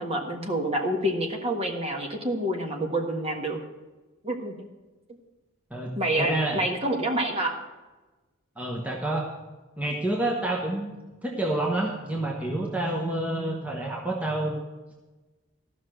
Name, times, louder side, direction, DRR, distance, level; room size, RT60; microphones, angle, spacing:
voice 1, 0.0-3.6 4.2-4.7 6.0-7.6, right 1 dB, 30° right, 2 dB, 1.5 m, -28 dB
voice 2, 5.7-6.6 8.6-9.3 9.8-10.9 11.2-14.6, right 1 dB, 5° right, -1 dB, 1.1 m, -28 dB
13.5 x 6.1 x 7.9 m, 1.2 s
head